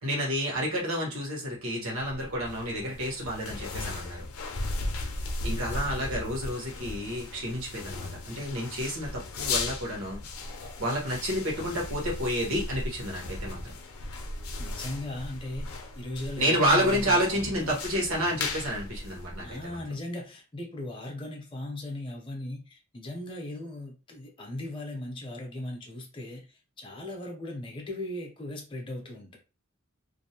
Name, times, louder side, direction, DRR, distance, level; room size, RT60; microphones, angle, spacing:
voice 1, 0.0-4.3 5.4-10.2 10.5-13.7 16.4-19.8, equal, 80° right, 1.0 m, -30 dB
sound 1, 1.9-19.8, left 2 dB, 75° left, 0.5 m, -37 dB
voice 2, 5.7-6.4 14.6-17.8 19.4-29.4, left 1 dB, 25° left, 0.6 m, -38 dB
2.6 x 2.0 x 2.8 m
head